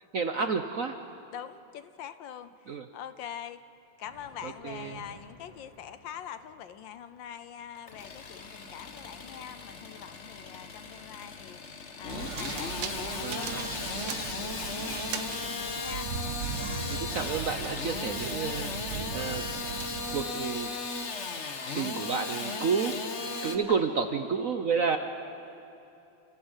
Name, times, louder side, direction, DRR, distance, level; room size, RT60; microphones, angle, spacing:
voice 1, 0.1-1.0 2.7-2.8 4.4-5.0 13.2-13.6 16.9-19.5 20.1-20.7 21.7-23.1 23.4-25.0, right 5 dB, 55° right, 7 dB, 0.9 m, -30 dB
voice 2, 1.3-3.6 4.0-16.1 21.9-22.0 23.7-23.8 24.9-25.0, left 9 dB, 70° left, 12 dB, 1.3 m, -44 dB
Thunder, 3.8-13.3 13.6-13.8 14.5-14.6 15.6-15.7, equal, 15° right, 4.0 m, -59 dB
Engine starting / Sawing, 7.8-23.6, left 4 dB, 40° left, 1.3 m, -36 dB
sound 1, 12.1-20.3, right 6 dB, 75° right, 1.9 m, -38 dB
29.5 x 15.0 x 8.1 m, 2.9 s
omnidirectional pair, 2.3 m